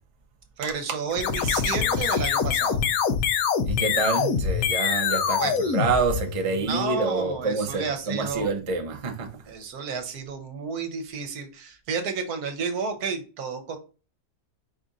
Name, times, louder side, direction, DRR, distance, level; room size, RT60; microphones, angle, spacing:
voice 1, 0.6-2.8 5.4-5.8 6.5-8.5 9.4-13.8, right 5 dB, 75° right, 1.3 m, -31 dB
sound 1, 1.1-6.6, left 7 dB, 70° left, 1.0 m, -25 dB
voice 2, 3.7-5.4 5.7-9.3, right 4 dB, 35° right, 0.5 m, -27 dB
4.8 x 2.5 x 3.9 m
omnidirectional pair, 1.6 m